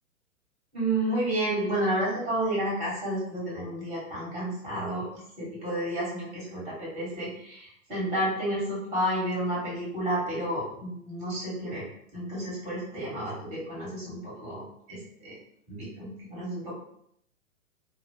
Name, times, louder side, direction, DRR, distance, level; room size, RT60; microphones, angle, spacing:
voice 1, 0.7-5.0 5.4-11.8 12.1-14.6 14.9-15.3 15.7-16.8, right 1 dB, 15° right, -6 dB, 1.4 m, -31 dB
2.5 x 2.3 x 3.8 m, 0.71 s
figure-of-eight pair, 115°, 43 cm